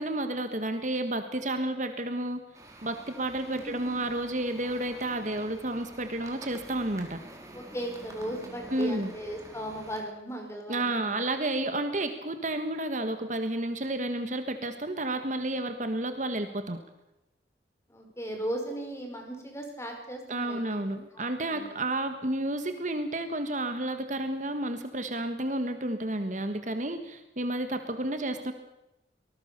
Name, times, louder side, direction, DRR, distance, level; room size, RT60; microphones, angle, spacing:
voice 1, 0.0-2.4 2.8-7.2 8.7-9.1 10.7-16.8 20.3-28.5, right 1 dB, 40° right, 8 dB, 1.6 m, -31 dB
sound 1, 2.5-10.0, right 1 dB, 15° right, 3.8 m, -48 dB
voice 2, 3.5-4.0 7.5-11.3 17.9-20.8 21.1-21.7, equal, 15° left, 3 dB, 4.9 m, -37 dB
25.0 x 19.5 x 6.8 m, 0.91 s
head